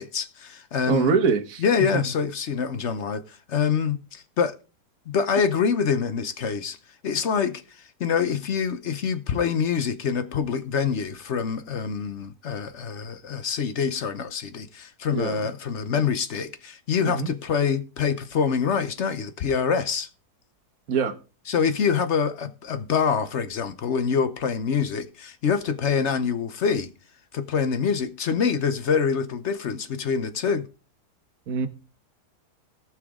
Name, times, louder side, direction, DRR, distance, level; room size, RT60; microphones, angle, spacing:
voice 1, 0.0-1.2 1.6-4.5 5.1-6.8 7.0-7.6 8.0-20.1 21.5-26.9 27.3-30.7, left 6 dB, 55° left, 0.9 m, -25 dB
voice 2, 0.9-1.6 1.9-2.0 15.1-15.5 17.0-17.3 20.9-21.2 31.5-31.7, right 5 dB, 60° right, 1.5 m, -24 dB
18.5 x 6.1 x 3.6 m
omnidirectional pair, 1.8 m